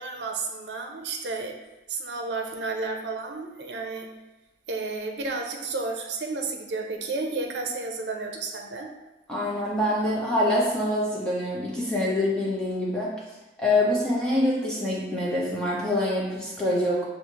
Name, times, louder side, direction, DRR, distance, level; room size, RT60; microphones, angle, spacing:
voice 1, 0.0-1.5 1.9-4.1 4.7-8.9, right 3 dB, 70° right, 3 dB, 0.6 m, -32 dB
voice 2, 9.3-13.1 13.6-17.0, left 1 dB, 5° left, -6 dB, 1.0 m, -25 dB
7.0 x 2.4 x 3.1 m, 1.0 s
head